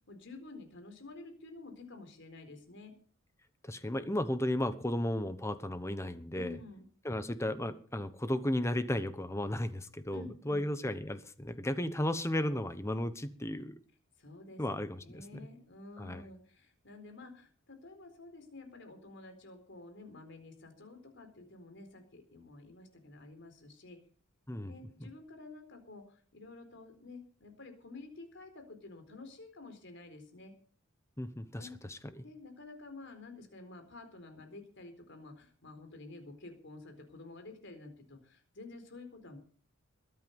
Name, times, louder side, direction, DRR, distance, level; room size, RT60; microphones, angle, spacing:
voice 1, 0.1-2.9 6.3-6.9 10.1-10.6 14.2-14.6 15.0-24.0 24.7-30.5 31.6-31.8 32.2-39.4, left 3 dB, 55° left, 7 dB, 4.3 m, -50 dB
voice 2, 3.6-6.6 7.0-13.8 14.6-15.2 16.0-16.2 24.5-24.7 31.2-32.2, left 1 dB, 15° left, 12 dB, 1.1 m, -34 dB
21.5 x 9.2 x 5.4 m, 0.44 s
head